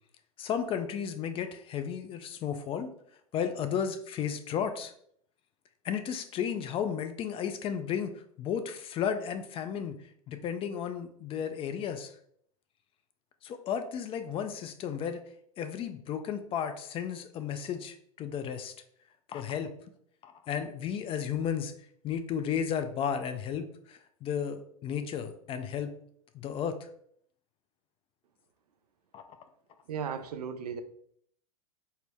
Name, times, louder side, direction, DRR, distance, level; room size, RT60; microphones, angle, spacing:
voice 1, 0.4-2.9 3.3-4.9 5.8-10.0 10.3-12.1 13.4-15.2 15.6-18.7 19.3-19.7 20.2-21.7 22.0-26.0 26.3-26.8 29.1-29.2, left 8 dB, 30° left, 0.4 m, -33 dB
voice 2, 29.9-30.8, right 7 dB, 90° right, 0.5 m, -35 dB
4.4 x 2.0 x 3.4 m
hypercardioid pair, 105°, 19 cm